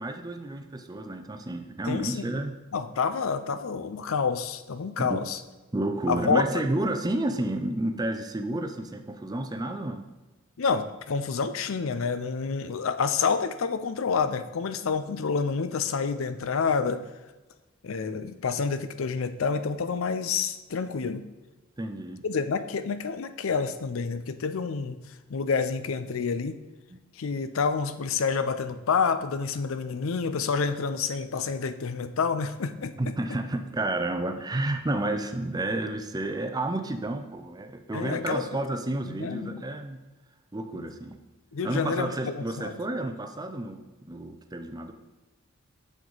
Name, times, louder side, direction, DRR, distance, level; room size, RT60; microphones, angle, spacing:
voice 1, 0.0-2.5 5.0-5.2 5.7-10.1 21.8-22.2 26.9-27.0 33.0-40.0 40.5-41.2 41.6-44.9, right 1 dB, 20° right, 6 dB, 0.5 m, -31 dB
voice 2, 1.9-2.2 2.7-5.4 6.1-6.4 10.6-17.0 17.8-21.2 22.2-25.0 25.3-26.6 27.2-33.1 37.9-38.6 39.1-39.6 41.5-42.8, left 5 dB, 75° left, 11 dB, 0.5 m, -28 dB
7.5 x 6.7 x 4.0 m, 1.1 s
head